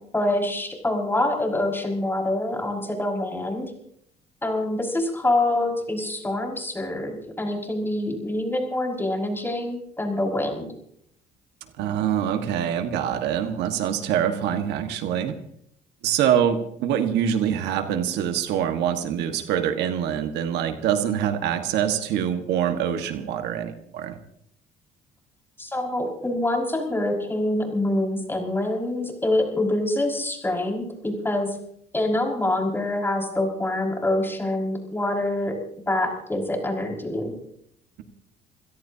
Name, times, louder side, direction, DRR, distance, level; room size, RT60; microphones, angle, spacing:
voice 1, 0.1-3.7 4.4-10.7 25.6-31.6 31.9-35.5 35.9-37.3, left 1 dB, 15° left, 0 dB, 5.6 m, -25 dB
voice 2, 11.8-15.3 16.0-24.2, right 9 dB, 85° right, 7 dB, 1.6 m, -25 dB
28.5 x 17.0 x 2.8 m, 0.70 s
cardioid pair, 110°, 17 cm